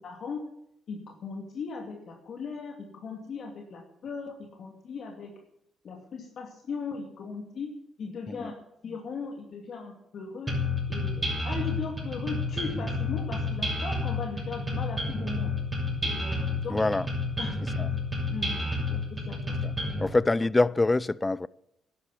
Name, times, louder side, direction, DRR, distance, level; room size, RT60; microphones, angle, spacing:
voice 1, 0.0-0.5 0.9-5.3 5.8-7.7 8.0-8.5 8.8-10.5 10.9-15.5 16.0-16.8 17.4-17.6 18.3-19.9, left 5 dB, 60° left, 2.5 m, -38 dB
sound 1, 10.5-20.1, left 2 dB, 15° right, 6.4 m, -30 dB
voice 2, 16.7-17.0 17.8-17.9 19.6-19.7 20.0-21.5, left 2 dB, 20° left, 0.4 m, -25 dB
12.0 x 10.5 x 8.4 m
cardioid pair, 90°, 0 cm